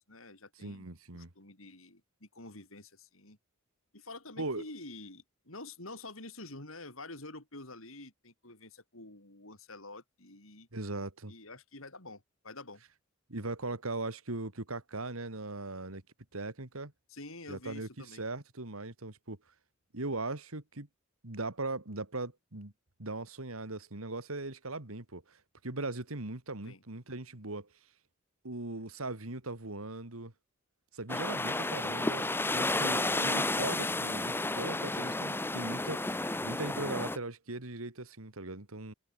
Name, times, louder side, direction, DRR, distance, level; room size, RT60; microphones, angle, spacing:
voice 1, 0.1-3.4 3.9-10.7 11.3-12.8 17.1-18.2 26.6-26.8, left 2 dB, 70° left, 7.9 m, -48 dB
voice 2, 0.6-1.3 4.4-4.6 10.7-11.3 13.3-16.0 16.3-16.9 17.5-17.9 18.2-19.4 19.9-20.9 21.2-22.7 23.0-27.7 28.4-30.3 30.9-32.2 32.5-36.2 36.4-38.9, right 2 dB, 75° right, 2.6 m, -39 dB
sound 1, 31.1-37.2, left 2 dB, 10° left, 1.0 m, -32 dB
head